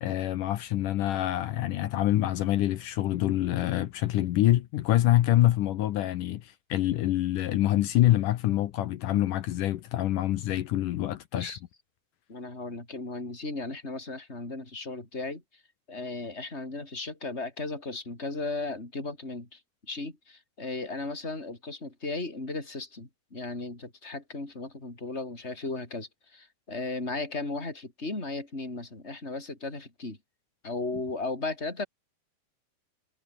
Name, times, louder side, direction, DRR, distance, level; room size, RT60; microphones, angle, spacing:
voice 1, 0.0-11.5, left 14 dB, 70° left, 2.1 m, -26 dB
voice 2, 12.3-15.6 15.9-30.2 30.6-31.8, left 3 dB, 15° left, 5.9 m, -36 dB
omnidirectional pair, 4.7 m